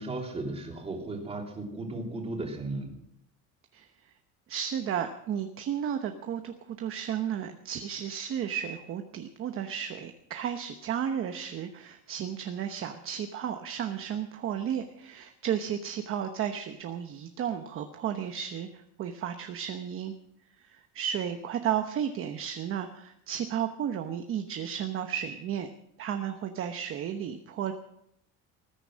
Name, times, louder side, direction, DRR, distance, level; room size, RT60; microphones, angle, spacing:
voice 1, 0.0-2.9, right 2 dB, 15° right, 0 dB, 3.2 m, -35 dB
voice 2, 4.5-20.1 20.6-25.7 26.0-27.7, right 9 dB, 40° right, 6 dB, 1.0 m, -33 dB
20.0 x 10.0 x 6.3 m, 0.78 s
cardioid pair, 170°, 34 cm